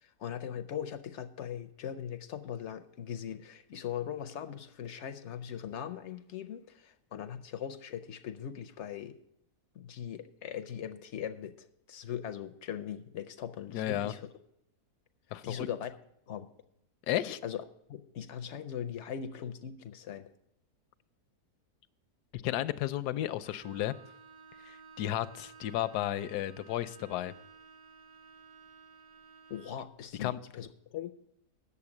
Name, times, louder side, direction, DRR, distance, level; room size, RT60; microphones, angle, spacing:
voice 1, 0.0-9.2 9.7-14.3 15.4-15.9 16.3-16.5 17.2-17.6 17.9-20.3 29.5-31.1, left 9 dB, 65° left, 10 dB, 0.7 m, -40 dB
voice 2, 13.7-14.1 15.3-15.7 17.1-17.4 22.3-23.9 24.7-27.3 30.2-30.4, left 13 dB, 80° left, 14 dB, 1.1 m, -33 dB
Bowed string instrument, 23.4-29.9, right 5 dB, 65° right, 1.3 m, -55 dB
9.7 x 7.0 x 7.1 m, 0.79 s
omnidirectional pair, 1.7 m